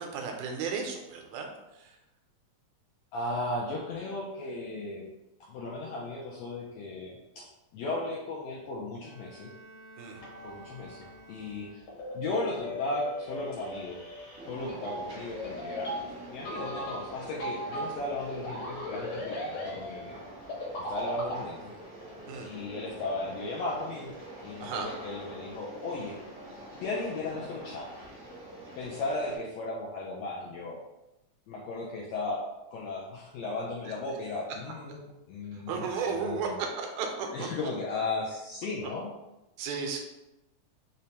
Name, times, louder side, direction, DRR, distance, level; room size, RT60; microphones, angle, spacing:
voice 1, 0.0-1.5 1.8-1.9 10.0-10.2 22.3-22.5 24.6-24.9 33.9-34.0 35.7-37.7 38.8-38.9 39.6-40.0, right 5 dB, 80° right, 2 dB, 1.9 m, -34 dB
voice 2, 3.1-5.1 5.5-7.5 7.7-9.5 10.4-11.8 12.1-14.0 14.5-15.9 16.3-20.2 20.9-21.7 22.4-24.1 24.4-26.2 26.8-27.9 28.8-30.8 31.5-32.4 32.7-36.6 37.3-39.1, left 2 dB, 80° left, -4 dB, 1.5 m, -36 dB
Bowed string instrument, 9.0-12.2, right 1 dB, 40° left, 0.7 m, -53 dB
sound 1, 10.1-21.4, equal, 65° left, 1.5 m, -38 dB
sound 2, 14.4-29.4, right 1 dB, 50° right, 0.9 m, -46 dB
5.2 x 2.1 x 2.8 m, 0.96 s
omnidirectional pair, 3.5 m